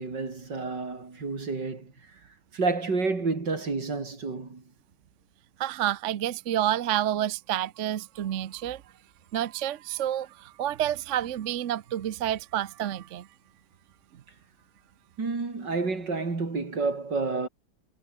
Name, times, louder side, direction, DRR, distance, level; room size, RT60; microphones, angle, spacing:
voice 1, 0.0-1.9 2.5-4.6 15.2-17.5, right 4 dB, 85° right, 4.5 m, -29 dB
voice 2, 5.6-8.8 9.3-13.3, right 11 dB, 55° right, 0.9 m, -29 dB
omnidirectional pair, 1.9 m